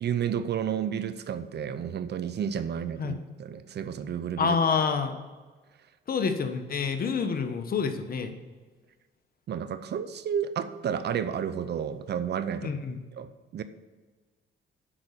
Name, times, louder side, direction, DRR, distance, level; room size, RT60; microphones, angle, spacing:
voice 1, 0.0-4.6 9.5-12.8 13.1-13.6, right 8 dB, 55° right, 13 dB, 0.7 m, -31 dB
voice 2, 4.4-5.1 6.1-8.3 12.6-13.0, left 5 dB, 50° left, 7 dB, 1.2 m, -27 dB
8.8 x 5.6 x 6.8 m, 1.4 s
cardioid pair, 90°, 20 cm